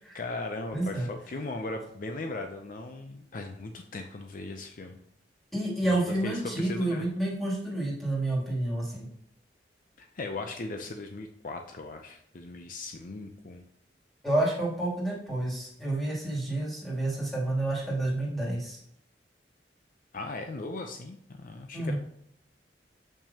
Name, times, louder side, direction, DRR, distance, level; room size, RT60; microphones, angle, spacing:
voice 1, 0.1-5.0 5.8-7.1 10.0-13.6 20.1-22.0, left 2 dB, 50° left, 5 dB, 0.5 m, -38 dB
voice 2, 0.7-1.1 5.5-9.1 14.2-18.8 21.7-22.0, right 1 dB, ahead, -6 dB, 2.7 m, -29 dB
6.7 x 5.9 x 2.8 m, 0.72 s
head